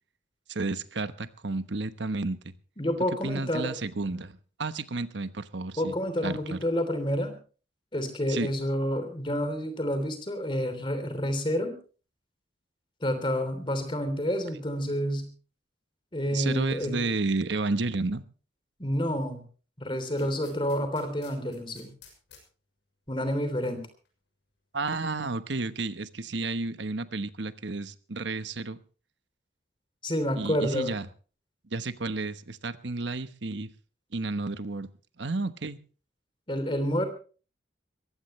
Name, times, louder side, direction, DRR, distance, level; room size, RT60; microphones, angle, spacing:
voice 1, 0.5-2.5 3.2-5.9 6.2-6.6 8.3-8.5 16.3-18.2 24.7-28.8 30.4-31.1 31.7-33.7 34.1-34.9 35.2-35.8, right 3 dB, 70° right, 12 dB, 1.1 m, -31 dB
voice 2, 2.8-3.7 5.8-7.4 7.9-11.8 13.0-15.3 16.1-17.1 18.8-19.4 19.8-21.9 23.1-23.9 30.0-30.9 36.5-37.1, equal, 25° left, 9 dB, 3.3 m, -29 dB
sound 1, 20.2-22.4 24.0-24.1, left 7 dB, 65° left, 6.5 m, -53 dB
22.0 x 16.0 x 3.2 m, 0.38 s
head